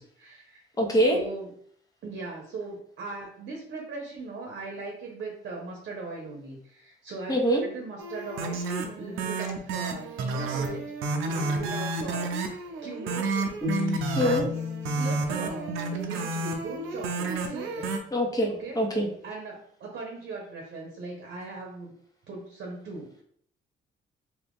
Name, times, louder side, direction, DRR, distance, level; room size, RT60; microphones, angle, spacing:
voice 1, 0.0-0.6 1.1-1.5 2.0-8.7 9.0-12.3 12.8-13.3 13.8-14.4 14.9-17.9 18.5-18.8 19.2-21.9 22.3-23.2, right 3 dB, 60° right, -1 dB, 0.9 m, -39 dB
voice 2, 0.8-1.2 7.3-7.6 14.1-14.4 18.1-19.1, equal, 20° left, 0 dB, 1.0 m, -24 dB
sound 1, 8.0-18.0, right 3 dB, 90° right, 0.5 m, -31 dB
sound 2, 13.6-16.7, left 5 dB, 35° right, 1.2 m, -34 dB
2.8 x 2.4 x 3.5 m, 0.62 s
cardioid pair, 90°, 20 cm